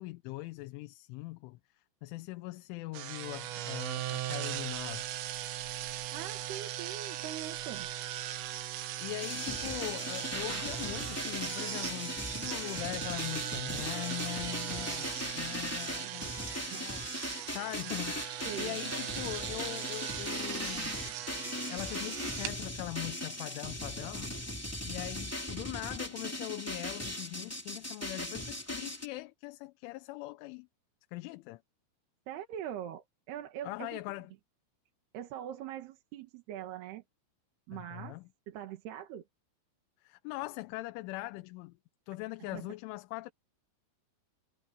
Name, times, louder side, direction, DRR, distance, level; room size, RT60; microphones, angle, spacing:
voice 1, 0.0-5.1 9.0-21.0 21.7-24.4 24.8-30.7 31.1-31.6 33.6-34.3 37.7-38.2 40.0-41.8 42.1-43.3, left 20 dB, 80° left, 3.1 m, -41 dB
sound 1, 2.9-22.5, right 13 dB, 85° right, 4.0 m, -39 dB
voice 2, 6.1-7.9 16.0-16.3 16.7-16.9 18.4-18.8 32.3-34.0 35.1-37.0 37.7-38.2 38.5-39.2 42.5-42.7, right 11 dB, 65° right, 3.3 m, -42 dB
sound 2, 9.2-29.1, left 1 dB, 5° left, 1.3 m, -39 dB
omnidirectional pair, 5.7 m